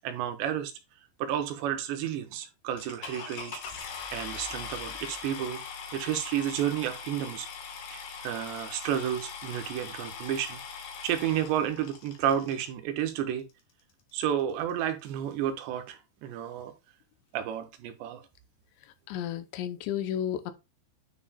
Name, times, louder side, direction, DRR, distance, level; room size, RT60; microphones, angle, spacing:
voice 1, 0.0-0.7 1.2-5.6 5.9-7.5 7.9-10.6 11.0-13.5 14.1-16.7 17.3-18.2, right 10 dB, 80° right, 2.7 m, -31 dB
sound 1, 2.8-12.7 13.5-13.6 14.1-14.2 14.4-14.7, left 6 dB, 65° left, 2.5 m, -41 dB
voice 2, 19.1-20.5, left 10 dB, 80° left, 3.0 m, -32 dB
9.8 x 5.3 x 2.3 m
omnidirectional pair, 5.4 m